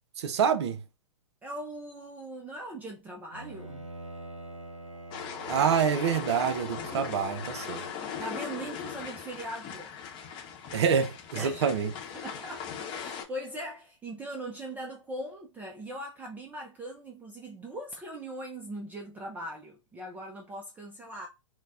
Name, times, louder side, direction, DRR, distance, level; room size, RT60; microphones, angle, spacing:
voice 1, 0.2-0.8 5.5-7.8 10.7-11.9, right 7 dB, 60° right, 0.5 m, -26 dB
voice 2, 1.4-3.9 8.2-10.0 11.4-11.7 12.1-21.3, right 1 dB, 10° right, 0.4 m, -40 dB
Bowed string instrument, 3.3-8.2, right 2 dB, 85° right, 0.8 m, -45 dB
sound 1, 5.1-13.2, left 7 dB, 30° left, 0.8 m, -39 dB
3.9 x 2.1 x 2.3 m
figure-of-eight pair, 110°, 16 cm